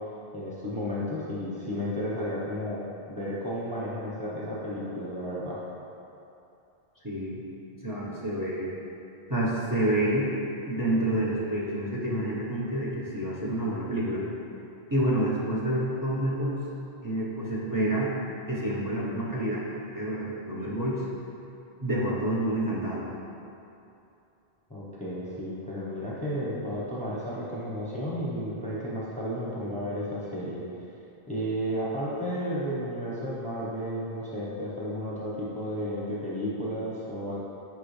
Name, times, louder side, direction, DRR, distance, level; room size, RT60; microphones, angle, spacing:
voice 1, 0.3-5.6 24.7-30.6 31.3-37.4, equal, 5° left, -7 dB, 1.0 m, -33 dB
voice 2, 7.0-7.4 7.8-8.7 9.3-10.3 10.6-14.2 14.9-16.6 17.0-18.1 18.5-19.6 19.9-21.0 21.8-23.0, right 1 dB, 20° right, -6 dB, 1.1 m, -28 dB
8.8 x 5.4 x 3.3 m, 2.8 s
omnidirectional pair, 1.1 m